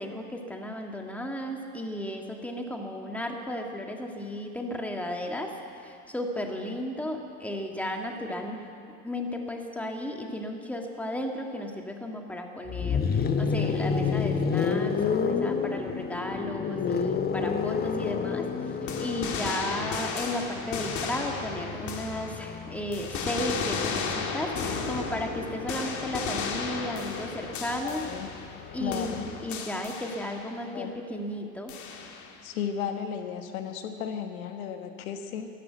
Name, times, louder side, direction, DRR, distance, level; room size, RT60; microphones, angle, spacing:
voice 1, 0.0-8.6 9.0-28.1 28.7-31.8, left 1 dB, 5° left, 2 dB, 1.8 m, -34 dB
sound 1, 12.7-24.6 25.9-29.5, left 5 dB, 20° left, 0.9 m, -30 dB
sound 2, 18.9-22.6 22.9-28.6 28.9-30.6 31.7-32.4, left 5 dB, 40° left, 2.0 m, -34 dB
voice 2, 27.8-28.3 28.8-29.3 30.7-31.0 32.4-35.5, left 8 dB, 75° left, 6 dB, 1.5 m, -34 dB
14.0 x 11.0 x 9.0 m, 2.4 s
hypercardioid pair, 100°, 42 cm